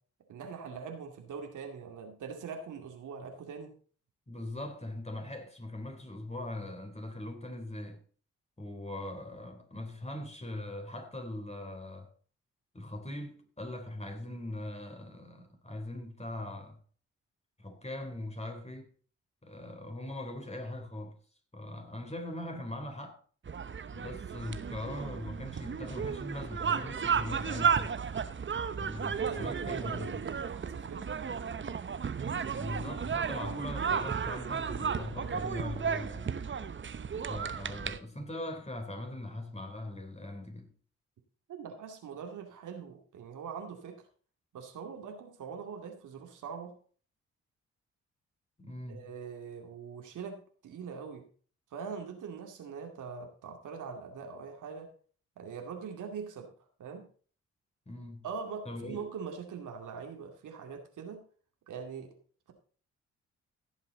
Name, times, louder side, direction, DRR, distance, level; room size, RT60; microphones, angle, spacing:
voice 1, 0.3-3.7 29.1-31.2 37.3-38.0 41.5-44.0 44.5-46.8 48.9-51.3 51.7-54.9 55.4-56.5 56.8-57.1 58.2-61.2 61.7-62.1, right 6 dB, 65° right, 2.3 m, -42 dB
voice 2, 4.3-8.0 8.6-12.1 12.7-16.8 17.6-18.9 19.4-21.2 21.5-23.2 23.9-27.9 28.8-30.2 32.6-36.3 37.3-40.7 48.6-49.1 57.8-58.3 58.6-59.1, left 1 dB, 20° left, 3.5 m, -41 dB
sound 1, 23.5-38.0, right 6 dB, 35° right, 1.0 m, -33 dB
16.0 x 7.4 x 4.0 m
hypercardioid pair, 40°, 33 cm